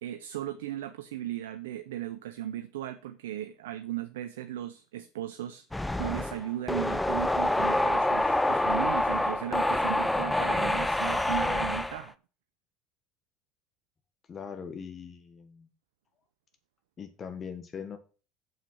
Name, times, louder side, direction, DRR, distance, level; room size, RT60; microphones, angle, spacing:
voice 1, 0.0-5.7 6.0-12.1, right 12 dB, 75° right, 0.5 m, -36 dB
sound 1, 5.7-12.0, left 1 dB, 10° left, 0.6 m, -27 dB
voice 2, 14.3-15.7 17.0-18.0, left 6 dB, 40° left, 1.3 m, -41 dB
7.2 x 5.8 x 5.7 m
hypercardioid pair, 70°, 0 cm